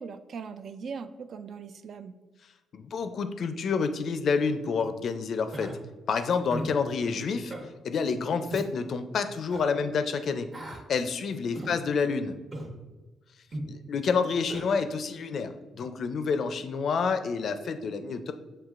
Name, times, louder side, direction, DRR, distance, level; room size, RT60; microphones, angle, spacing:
voice 1, 0.0-2.1 11.6-11.8, right 5 dB, 60° right, 10 dB, 0.3 m, -40 dB
voice 2, 2.7-5.7 6.1-7.5 7.8-10.5 10.9-12.3 13.7-18.3, left 5 dB, 60° left, 9 dB, 0.4 m, -28 dB
Human voice, 5.5-5.7 6.5-6.7 7.5-7.7 8.5-8.7 9.5-9.7 10.5-10.8 11.5-11.7 12.5-12.7 13.5-13.7 14.5-14.7, right 1 dB, 40° right, 1.0 m, -37 dB
7.3 x 2.8 x 2.4 m, 1.2 s
cardioid pair, 90°, 0 cm